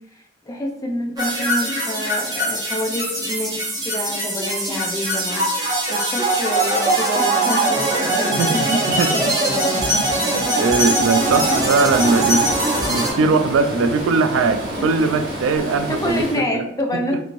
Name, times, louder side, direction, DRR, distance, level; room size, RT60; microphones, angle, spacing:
voice 1, 0.5-9.8 11.3-11.6 15.9-17.1, left 1 dB, 20° left, 0 dB, 0.5 m, -28 dB
sound 1, 1.2-13.1, right 1 dB, 20° right, 1.1 m, -21 dB
voice 2, 8.4-9.4 10.3-16.7 16.9-17.2, right 4 dB, 85° right, 9 dB, 0.3 m, -20 dB
Stream, 11.1-16.4, right 1 dB, 50° right, 1.0 m, -29 dB
3.0 x 2.6 x 2.5 m, 0.74 s
head